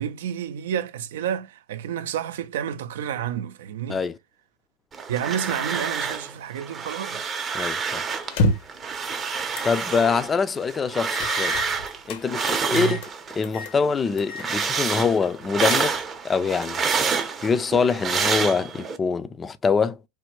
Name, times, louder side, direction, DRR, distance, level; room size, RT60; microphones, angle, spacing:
voice 1, 0.0-4.0 5.1-7.3 12.7-13.0, right 9 dB, 75° right, 0.4 m, -30 dB
sound 1, 4.9-6.3 6.6-8.4 8.7-13.4 13.8-19.0, right 5 dB, 25° right, 0.6 m, -28 dB
voice 2, 7.5-8.0 9.6-11.6 12.1-13.0 13.4-16.0 16.2-16.8 17.4-20.0, left 5 dB, 20° left, 0.4 m, -24 dB
sound 2, 8.2-8.8 9.5-9.8 10.2-10.3 11.1-12.2 12.8-13.1 13.4-13.8 14.2-14.5 14.8-14.9 15.4-16.2, left 2 dB, 65° left, 0.7 m, -28 dB
3.3 x 2.2 x 3.0 m
hypercardioid pair, 105°, 0 cm